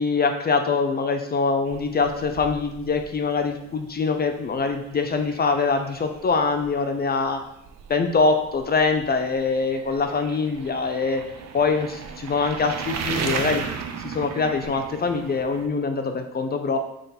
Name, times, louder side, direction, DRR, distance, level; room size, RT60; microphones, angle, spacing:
voice 1, 0.0-7.4 7.9-11.2 11.5-13.6 14.0-16.8, left 4 dB, 35° left, 6 dB, 0.5 m, -24 dB
sound 1, 1.7-15.7, right 6 dB, 60° right, 0.6 m, -36 dB
3.7 x 3.3 x 4.2 m, 0.81 s
cardioid pair, 90°, 30 cm